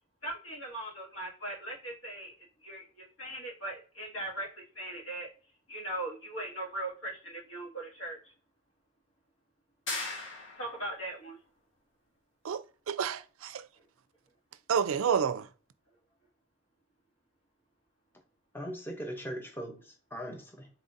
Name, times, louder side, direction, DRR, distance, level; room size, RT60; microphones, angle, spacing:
voice 1, 0.2-2.3 2.6-5.3 5.7-8.2 10.6-11.4, right 1 dB, 80° left, 1.8 m, -39 dB
sound 1, 9.9-10.9, left 2 dB, 60° left, 1.2 m, -37 dB
voice 2, 12.4-13.7 14.7-15.5, right 7 dB, 85° right, 0.4 m, -30 dB
voice 3, 18.5-20.7, equal, 10° left, 0.6 m, -40 dB
4.0 x 3.8 x 2.5 m
head